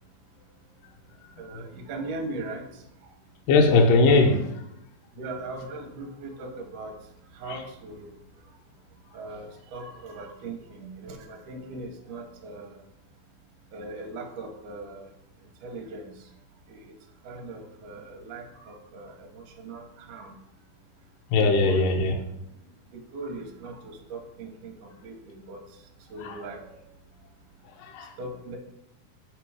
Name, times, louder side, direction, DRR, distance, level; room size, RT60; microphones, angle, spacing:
voice 1, 1.4-2.7 5.2-7.0 7.4-8.1 9.1-12.8 13.7-15.1 15.6-16.1 16.7-16.9 17.2-20.4 21.4-22.2 23.1-25.6 26.1-26.7 28.2-28.6, right 2 dB, 70° right, 3 dB, 2.1 m, -39 dB
voice 2, 3.5-4.5 7.5-7.6 21.3-22.2 26.2-26.3 27.8-28.1, left 3 dB, 80° left, 2 dB, 1.9 m, -20 dB
7.5 x 3.8 x 4.7 m, 0.81 s
omnidirectional pair, 4.5 m